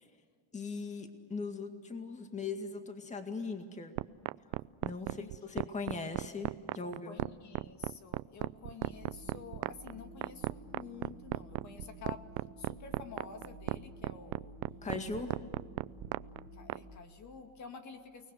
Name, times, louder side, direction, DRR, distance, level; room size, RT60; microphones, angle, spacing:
voice 1, 0.5-3.9 4.8-7.2 14.8-15.4, left 4 dB, 20° left, 6 dB, 2.1 m, -39 dB
sound 1, 4.0-16.8, right 23 dB, 80° right, 0.6 m, -35 dB
voice 2, 4.8-5.9 6.8-12.2 12.6-14.6 15.3-15.4 16.5-18.3, left 6 dB, 45° left, 6 dB, 2.2 m, -50 dB
sound 2, 8.9-17.0, right 1 dB, 30° right, 1.6 m, -52 dB
29.5 x 20.0 x 8.0 m, 2.1 s
cardioid pair, 140°, 38 cm